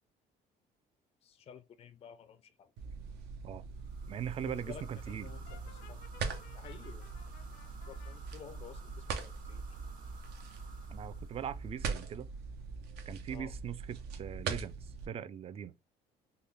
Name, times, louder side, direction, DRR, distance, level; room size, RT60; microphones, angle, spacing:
voice 1, 1.2-2.7 4.4-6.0 6.5-7.1 7.9-9.6 13.3-13.5, left 8 dB, 35° left, 0.4 m, -52 dB
sound 1, 2.8-15.1, right 5 dB, 75° right, 0.8 m, -42 dB
sound 2, 3.8-12.3, right 4 dB, 50° right, 1.8 m, -58 dB
voice 2, 4.1-5.3 10.9-12.3 13.1-15.7, right 8 dB, 35° right, 0.4 m, -41 dB
Brass instrument, 5.5-8.2, left 8 dB, 75° left, 0.6 m, -58 dB
3.7 x 2.2 x 3.3 m
cardioid pair, 110°, 17 cm